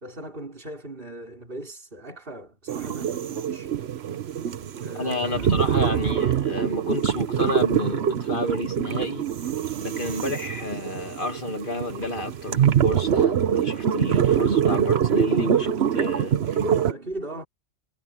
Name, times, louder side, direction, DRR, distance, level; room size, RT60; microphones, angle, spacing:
voice 1, 0.0-3.7 4.8-5.5 16.6-17.5, right 1 dB, 45° right, 4.9 m, -38 dB
sound 1, 2.7-16.9, right 8 dB, 65° right, 1.1 m, -24 dB
voice 2, 4.9-9.3 9.8-16.6, left 2 dB, 45° left, 2.4 m, -31 dB
omnidirectional pair, 1.2 m